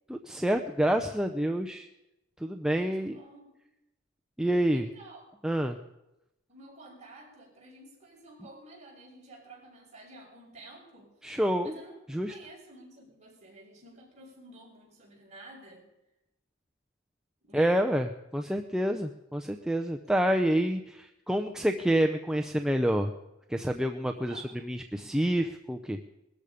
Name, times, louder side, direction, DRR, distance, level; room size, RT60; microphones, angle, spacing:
voice 1, 0.1-1.9 2.4-3.2 4.4-4.9 5.4-5.8 11.2-11.7 12.1-12.3 17.5-23.1 23.5-26.0, right 1 dB, 5° right, 4 dB, 0.6 m, -28 dB
voice 2, 2.7-3.5 4.7-5.2 6.5-11.1 11.6-12.0 12.3-15.8 17.4-17.8 24.1-24.5, right 2 dB, 35° right, -3 dB, 6.2 m, -51 dB
20.5 x 13.5 x 5.1 m, 0.89 s
head